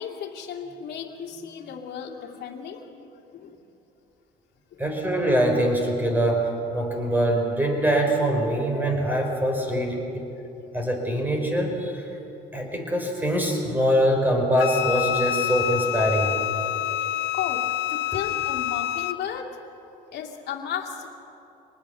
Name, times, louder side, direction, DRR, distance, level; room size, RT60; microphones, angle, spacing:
voice 1, 0.0-3.6 4.7-4.9 17.3-19.6 20.1-21.1, left 8 dB, 65° left, -1 dB, 2.5 m, -35 dB
voice 2, 4.8-10.3 10.7-12.0 12.5-16.3, right 1 dB, 10° right, 2 dB, 4.7 m, -23 dB
Wind instrument woodwind instrument, 14.6-19.2, left 13 dB, 90° left, 0.7 m, -27 dB
25.0 x 19.5 x 6.9 m, 3.0 s
cardioid pair, 125°, 18 cm